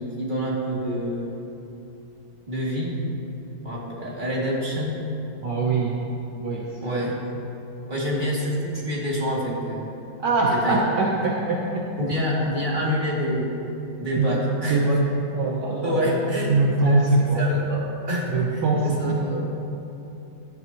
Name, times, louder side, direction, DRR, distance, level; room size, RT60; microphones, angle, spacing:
voice 1, 0.0-1.3 2.5-2.9 3.6-5.0 6.8-7.2 7.9-9.9 10.6-10.8 12.0-13.5 14.0-14.8 15.8-16.5 16.8-17.0 17.4-19.4, equal, 25° right, -6 dB, 3.0 m, -27 dB
voice 2, 5.4-6.0 6.4-7.1 10.2-11.9 14.2-15.1 15.3-16.2 16.5-17.4 18.3-19.3, right 3 dB, 65° right, -3 dB, 1.7 m, -23 dB
18.0 x 13.0 x 3.1 m, 2.9 s
omnidirectional pair, 2.1 m